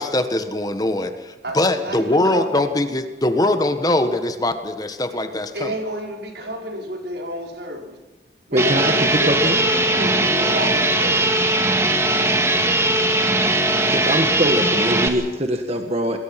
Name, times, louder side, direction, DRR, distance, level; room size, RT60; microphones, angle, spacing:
voice 1, 0.0-5.7, left 1 dB, 20° left, 8 dB, 1.4 m, -22 dB
voice 2, 1.4-2.7 5.5-8.0 8.5-11.2, equal, 70° right, 1 dB, 5.2 m, -30 dB
voice 3, 8.5-9.6 13.9-16.2, equal, 35° right, 4 dB, 1.5 m, -22 dB
sound 1, 8.6-15.1, right 1 dB, 15° right, 2.1 m, -19 dB
27.5 x 20.5 x 5.9 m, 1.2 s
head